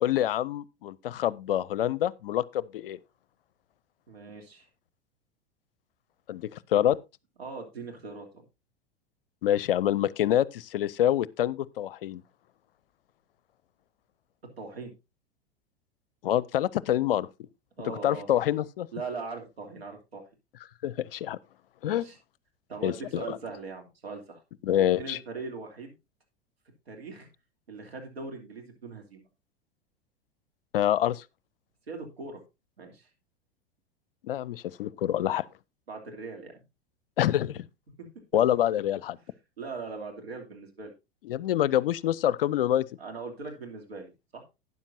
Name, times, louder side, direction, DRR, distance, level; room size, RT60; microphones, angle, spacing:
voice 1, 0.0-3.0 6.3-7.0 9.4-12.2 16.2-17.3 17.9-18.9 20.8-21.4 21.8-22.1 22.8-23.4 24.6-25.2 30.7-31.2 34.2-35.4 37.2-37.7 38.3-39.2 41.2-42.9, left 11 dB, 60° left, 0.5 m, -26 dB
voice 2, 4.1-4.7 7.4-8.4 14.6-14.9 17.8-18.3 18.9-20.3 21.8-22.2 22.7-24.4 24.9-25.9 26.9-27.3 27.7-29.3 31.9-32.4 32.8-33.1 35.9-36.6 38.0-38.1 39.6-40.9 43.0-44.4, right 4 dB, 75° right, 2.9 m, -40 dB
12.5 x 9.6 x 2.6 m
figure-of-eight pair, 90°, 31 cm